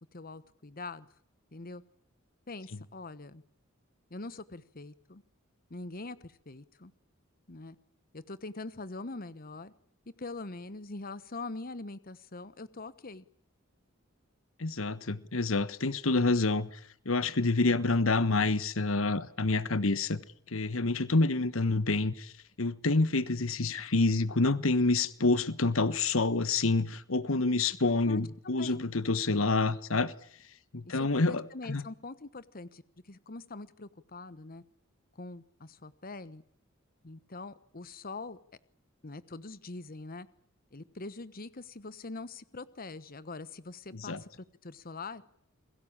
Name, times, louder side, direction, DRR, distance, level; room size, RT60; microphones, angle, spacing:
voice 1, 0.1-1.1 1.5-1.8 2.5-3.4 4.1-5.2 5.7-6.9 7.5-7.8 8.1-9.7 10.2-13.2 28.1-28.8 30.8-32.8 33.1-34.6 35.1-36.4 37.0-38.4 39.0-40.3 40.7-45.2, left 3 dB, 45° left, 1.2 m, -43 dB
voice 2, 14.6-16.7 17.0-20.2 20.5-22.3 22.6-30.1 30.7-31.4 31.7-31.8 44.1-44.2, left 3 dB, 90° left, 1.3 m, -27 dB
29.0 x 22.0 x 8.8 m
head